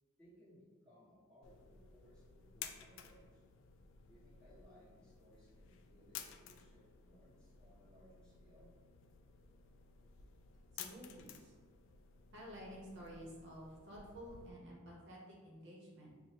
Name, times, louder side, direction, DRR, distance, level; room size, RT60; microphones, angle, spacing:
voice 1, 0.2-3.4 4.1-8.7, equal, 5° left, -11 dB, 1.2 m, -64 dB
sound 1, 1.4-14.5, left 8 dB, 60° left, 0.3 m, -55 dB
voice 2, 10.7-11.5 12.3-16.2, equal, 55° right, -3 dB, 0.7 m, -52 dB
5.8 x 2.1 x 2.8 m, 1.5 s
head